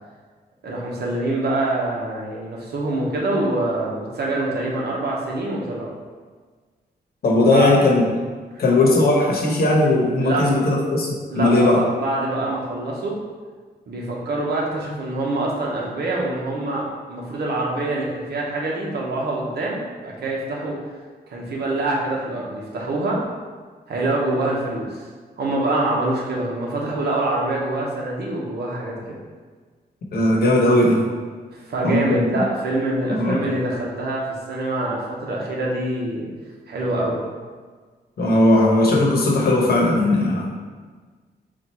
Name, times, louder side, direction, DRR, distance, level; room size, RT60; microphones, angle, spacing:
voice 1, 0.6-6.0 7.5-7.7 8.5-8.6 10.2-10.5 11.3-13.2 13.9-20.8 21.3-23.2 23.9-25.0 25.4-29.0 31.5-36.3 36.7-37.1, right 2 dB, 75° right, -3 dB, 1.0 m, -25 dB
voice 2, 7.2-8.0 8.6-11.8 30.1-31.0 31.8-32.2 33.1-33.4 38.2-40.5, left 2 dB, 65° left, -3 dB, 1.0 m, -18 dB
4.2 x 2.4 x 4.3 m, 1.5 s
wide cardioid pair, 135°, 17 cm